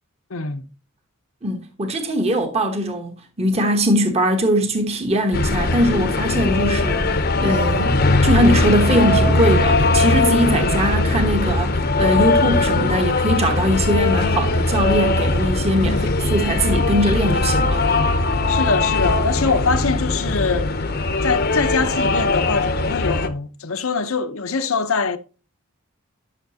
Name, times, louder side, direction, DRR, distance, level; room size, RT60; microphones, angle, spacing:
voice 1, 0.3-0.7 10.4-10.8 15.8-16.2 18.5-20.7 21.2-25.2, left 4 dB, 85° left, 0.9 m, -23 dB
voice 2, 1.4-17.9, equal, 30° right, 1.2 m, -21 dB
sound 1, 5.3-23.3, left 2 dB, 50° left, 0.8 m, -20 dB
12.0 x 6.6 x 2.9 m
head